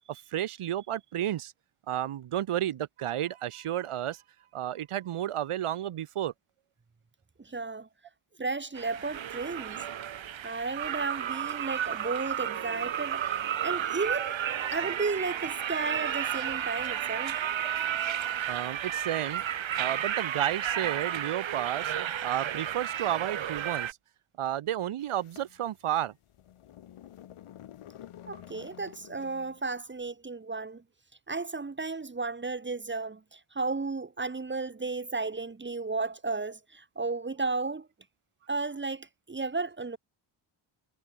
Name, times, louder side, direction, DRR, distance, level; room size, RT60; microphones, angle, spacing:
voice 1, 0.1-1.5 1.9-4.2 4.5-6.3 18.5-19.4 19.8-21.9 22.2-24.0 24.4-26.1, right 11 dB, 80° right, 4.8 m, -32 dB
voice 2, 7.4-7.9 8.4-9.8 10.4-14.4 14.7-17.4 28.3-30.8 31.3-37.9 38.5-40.0, right 3 dB, 20° right, 3.7 m, -34 dB
sound 1, 8.7-23.9, right 10 dB, 65° right, 4.9 m, -32 dB
sound 2, 25.0-29.7, left 11 dB, 85° left, 6.7 m, -50 dB
wide cardioid pair, 145°, 50 cm